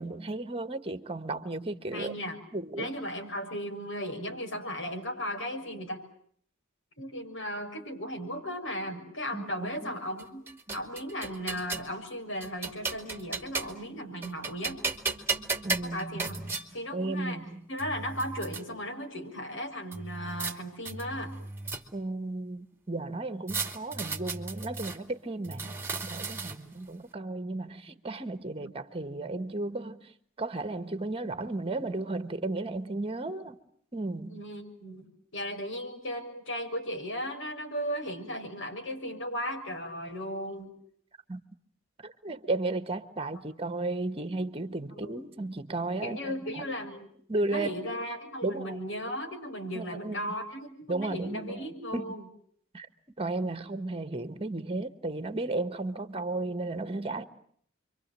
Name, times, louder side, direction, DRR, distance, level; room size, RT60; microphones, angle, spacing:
voice 1, 0.0-2.1 2.5-2.9 9.3-10.0 10.7-10.8 15.6-16.6 16.9-17.7 21.9-30.0 30.4-33.6 33.9-34.4 41.3-41.4 42.0-46.6 47.3-47.7 48.4-48.8 49.7-50.2 50.9-51.7 51.9-52.1 52.7-52.9 53.2-57.2, right 2 dB, 30° right, 1.6 m, -34 dB
voice 2, 1.9-2.4 2.8-6.0 7.0-14.8 15.8-16.4 16.7-17.4 17.7-21.3 28.5-28.7 34.3-40.7 45.0-45.2 46.0-47.1 47.4-52.3, equal, 70° left, 6.5 m, -36 dB
sound 1, 10.2-11.9 12.4-13.9 14.2-16.7 17.4-17.5 17.8-18.6 19.9-20.5 20.8-22.1 23.5-25.0 25.4-26.8, right 4 dB, 10° right, 2.5 m, -35 dB
30.0 x 24.5 x 7.7 m
head